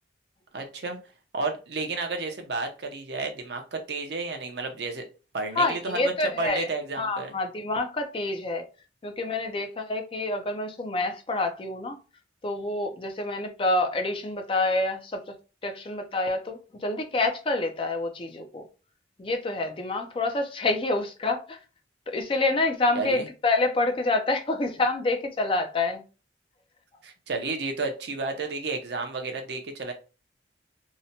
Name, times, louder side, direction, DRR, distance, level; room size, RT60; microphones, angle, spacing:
voice 1, 0.5-1.0 1.3-5.0 5.3-6.1 6.4-7.3 22.9-23.3 27.0-29.9, right 3 dB, 60° right, 0.6 m, -32 dB
voice 2, 5.6-6.7 7.0-8.6 9.0-12.0 12.4-15.2 15.6-18.6 19.2-21.6 22.1-26.0, left 2 dB, 30° left, 0.4 m, -27 dB
2.8 x 2.1 x 2.7 m
head